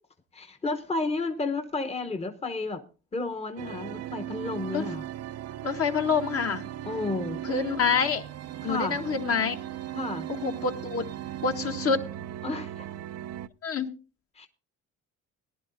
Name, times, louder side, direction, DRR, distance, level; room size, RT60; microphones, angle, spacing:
voice 1, 0.3-2.8 3.1-5.1 6.8-7.4 8.6-9.0 9.9-10.3 12.4-12.9 14.3-14.5, left 3 dB, 20° left, 6 dB, 1.0 m, -32 dB
sound 1, 3.6-13.5, right 12 dB, 60° right, 0.5 m, -37 dB
voice 2, 5.6-6.6 7.5-8.2 8.6-9.6 10.4-11.0 11.4-12.0 13.6-13.9, left 5 dB, 50° left, 4 dB, 1.5 m, -26 dB
18.5 x 11.0 x 2.7 m, 0.35 s
cardioid pair, 90°, 30 cm